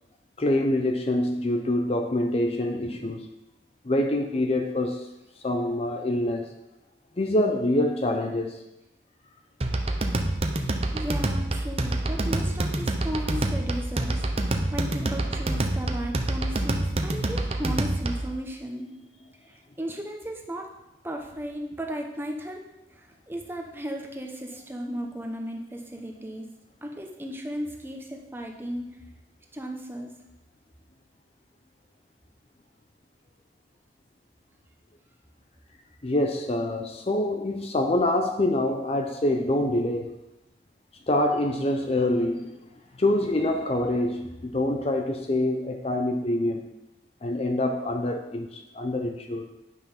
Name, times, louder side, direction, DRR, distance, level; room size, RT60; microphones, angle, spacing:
voice 1, 0.4-3.3 3.8-5.1 5.4-6.6 7.2-8.6 36.0-40.2 41.1-42.6 43.0-46.7 47.2-49.5, left 1 dB, 35° left, 0.6 m, -25 dB
sound 1, 9.6-18.3, right 1 dB, 35° right, 0.7 m, -27 dB
voice 2, 10.9-18.9 19.5-20.7 21.0-22.6 22.9-26.5 26.8-29.0 29.5-30.2, equal, 10° right, 1.1 m, -35 dB
9.2 x 5.8 x 5.7 m
head